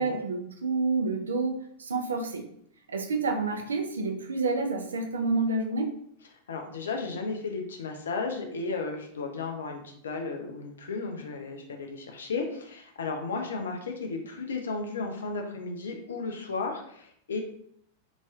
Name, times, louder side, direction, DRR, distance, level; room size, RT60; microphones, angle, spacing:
voice 1, 0.0-2.5 2.9-5.9, right 3 dB, 70° right, 4 dB, 0.4 m, -29 dB
voice 2, 6.5-17.4, left 4 dB, 65° left, 3 dB, 0.5 m, -34 dB
3.1 x 2.6 x 2.3 m, 0.67 s
figure-of-eight pair, 90°, 0 cm